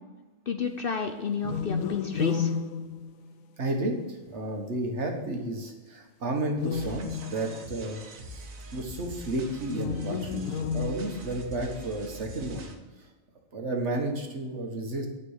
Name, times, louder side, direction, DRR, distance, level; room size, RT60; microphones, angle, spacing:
voice 1, 0.5-2.5, left 5 dB, 50° left, 5 dB, 0.8 m, -31 dB
sound 1, 1.4-3.7 6.5-7.8 9.6-11.5, left 6 dB, 85° left, 1.1 m, -32 dB
voice 2, 3.6-8.0 8.7-10.4 10.7-12.7 13.5-15.1, right 1 dB, 55° right, 2 dB, 1.7 m, -32 dB
sound 2, 6.7-12.7, right 1 dB, 80° right, 1.7 m, -43 dB
9.7 x 5.3 x 7.3 m, 1.2 s
omnidirectional pair, 1.4 m